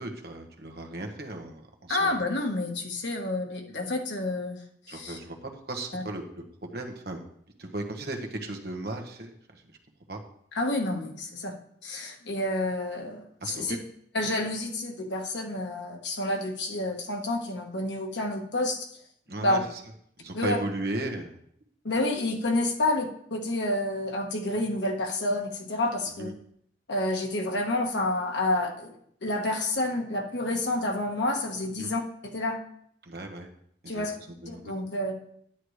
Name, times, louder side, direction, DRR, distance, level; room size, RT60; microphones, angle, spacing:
voice 1, 0.0-2.1 4.9-5.3 5.7-6.2 6.6-7.2 7.6-9.6 10.1-10.2 13.4-13.8 19.3-19.8 20.2-21.4 26.2-26.3 31.8-31.9 33.1-33.5 33.8-34.1 34.4-34.7, right 2 dB, 60° right, 3 dB, 1.3 m, -35 dB
voice 2, 1.9-4.6 4.9-5.2 5.9-6.0 10.5-11.5 11.8-13.8 14.1-18.9 19.4-19.6 20.3-20.6 21.8-26.3 26.9-28.9 29.2-32.6 33.9-34.1 34.5-35.2, left 2 dB, 85° left, 2 dB, 1.4 m, -29 dB
10.0 x 9.5 x 3.3 m, 0.69 s
head